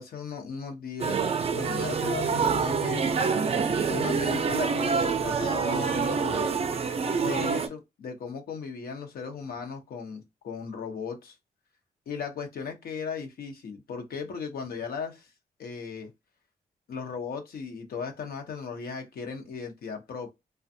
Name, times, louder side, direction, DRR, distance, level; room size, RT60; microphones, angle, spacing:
voice 1, 0.0-3.1 3.9-6.5 7.2-11.4 12.1-15.3 15.6-16.1 16.9-20.3, left 5 dB, 75° left, 0.7 m, -36 dB
sound 1, 1.0-7.7, right 5 dB, 40° right, 0.4 m, -26 dB
2.5 x 2.2 x 2.6 m
cardioid pair, 75°, 16 cm